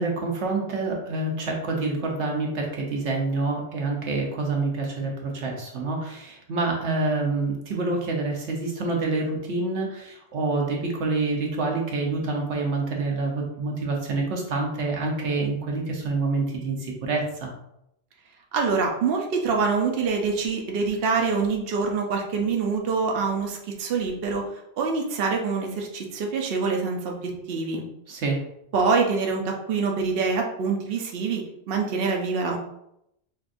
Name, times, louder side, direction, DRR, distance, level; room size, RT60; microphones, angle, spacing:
voice 1, 0.0-17.5 28.1-28.4, right 3 dB, 90° right, 0 dB, 1.2 m, -27 dB
voice 2, 18.5-27.8 28.7-32.6, right 4 dB, 65° right, 1 dB, 0.8 m, -25 dB
5.3 x 2.5 x 2.5 m, 0.80 s
omnidirectional pair, 1.1 m